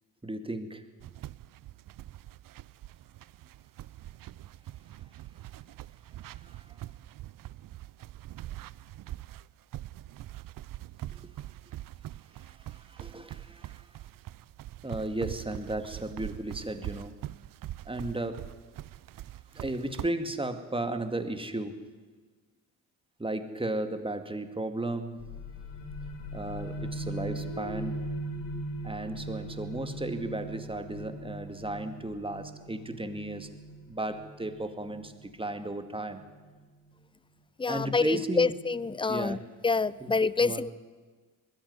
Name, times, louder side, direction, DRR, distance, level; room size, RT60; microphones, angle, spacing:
voice 1, 0.2-0.8 6.4-6.7 11.1-11.3 12.4-13.9 14.8-17.2 17.9-18.5 19.5-21.9 23.2-25.2 26.3-28.0 28.8-33.5 33.9-36.2 37.7-38.6 39.1-39.4 40.0-40.1 40.4-40.7, right 2 dB, 10° right, 8 dB, 2.2 m, -35 dB
sound 1, 1.0-20.1, right 14 dB, 50° right, 0.6 m, -43 dB
sound 2, 25.2-36.6, right 1 dB, 80° left, 2.6 m, -40 dB
voice 2, 37.6-39.4 39.6-40.7, left 4 dB, 10° left, 20 dB, 0.6 m, -27 dB
20.5 x 13.5 x 9.7 m, 1.4 s
hypercardioid pair, 60°, 45 cm